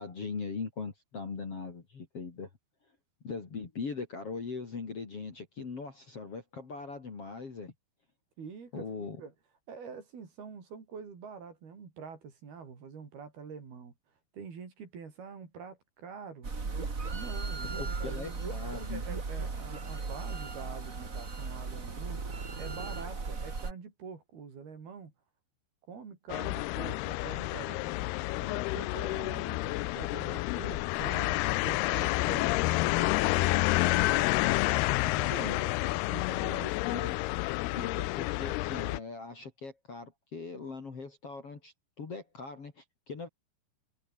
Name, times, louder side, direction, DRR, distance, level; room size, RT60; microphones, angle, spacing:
voice 1, 0.0-2.5 3.2-7.7 8.7-9.2 17.8-19.0 35.4-35.7 36.9-37.2 37.7-43.3, left 4 dB, 35° left, 3.4 m, -40 dB
voice 2, 8.4-9.3 9.7-13.9 14.3-16.5 17.1-18.4 18.9-22.2 22.6-25.1 25.9-34.3 35.0-35.5 35.8-36.8, right 5 dB, 55° right, 6.3 m, -46 dB
sound 1, 16.4-23.7, right 4 dB, 25° right, 1.8 m, -36 dB
sound 2, 26.3-39.0, left 21 dB, 90° left, 2.2 m, -29 dB
omnidirectional pair, 5.3 m